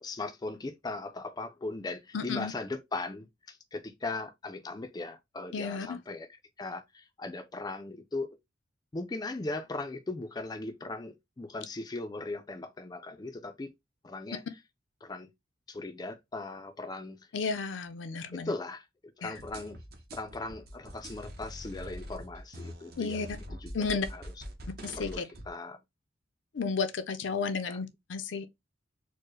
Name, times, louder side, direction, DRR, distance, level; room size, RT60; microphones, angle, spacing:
voice 1, 0.0-6.3 6.6-8.4 8.9-13.7 14.0-14.4 15.0-15.3 15.7-17.3 18.3-18.8 19.2-19.8 20.1-23.3 23.6-24.2 25.0-25.8 27.7-27.8, left 2 dB, 20° left, 0.4 m, -38 dB
voice 2, 2.1-2.5 5.5-6.0 17.3-18.5 19.2-19.3 23.0-23.4 23.7-24.1 24.8-25.2 26.5-28.5, left 5 dB, 80° left, 0.5 m, -33 dB
sound 1, 19.3-25.5, equal, 55° right, 0.8 m, -44 dB
4.4 x 2.1 x 3.0 m
head